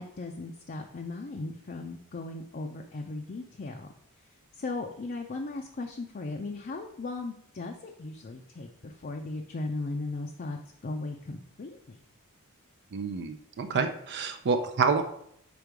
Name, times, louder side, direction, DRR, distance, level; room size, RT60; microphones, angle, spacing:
voice 1, 0.0-3.9 4.5-12.0, left 3 dB, 40° left, 3 dB, 0.5 m, -37 dB
voice 2, 12.9-15.0, right 5 dB, 50° right, 7 dB, 0.4 m, -28 dB
5.2 x 4.5 x 4.6 m, 0.72 s
head